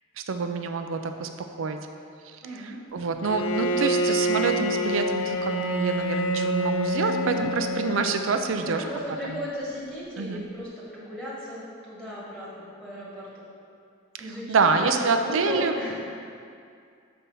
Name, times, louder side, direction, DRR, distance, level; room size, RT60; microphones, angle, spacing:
voice 1, 0.3-1.9 2.2-8.9 9.3-9.4 10.2-10.4 14.2-15.7, right 4 dB, 75° right, 7 dB, 0.5 m, -27 dB
voice 2, 2.4-2.8 7.0-7.4 8.6-13.5 14.2-15.9, equal, 5° left, -9 dB, 1.7 m, -36 dB
Bowed string instrument, 3.2-8.7, right 1 dB, 75° left, 0.4 m, -27 dB
7.0 x 4.3 x 5.4 m, 2.4 s
head